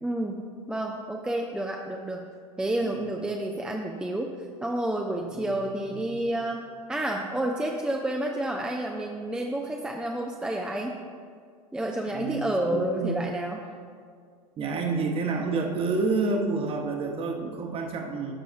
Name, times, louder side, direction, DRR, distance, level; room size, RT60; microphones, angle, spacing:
voice 1, 0.0-0.4 0.7-2.3 2.6-4.3 4.6-10.9 11.7-13.6, right 1 dB, 5° right, 1 dB, 0.5 m, -30 dB
voice 2, 5.9-6.2 12.1-13.1 14.6-18.3, right 4 dB, 30° right, 3 dB, 1.1 m, -29 dB
15.0 x 6.1 x 2.5 m, 2.1 s
figure-of-eight pair, 85°, 19 cm